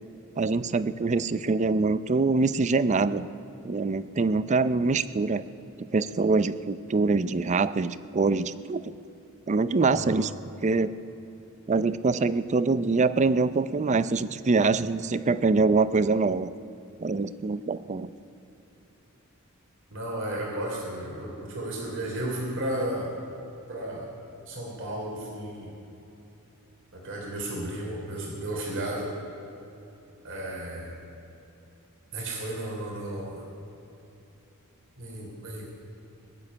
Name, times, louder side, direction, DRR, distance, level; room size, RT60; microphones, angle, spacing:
voice 1, 0.4-3.3 3.6-5.4 5.9-8.9 9.5-10.3 10.6-10.9 11.7-16.5 17.0-18.1, right 3 dB, 35° right, 15 dB, 0.5 m, -24 dB
voice 2, 9.9-10.2 19.9-23.1 23.7-24.2 24.5-25.7 26.9-29.1 30.2-30.9 32.1-33.4 35.0-35.7, right 1 dB, 60° right, -2 dB, 3.2 m, -33 dB
19.5 x 7.5 x 9.7 m, 3.0 s
head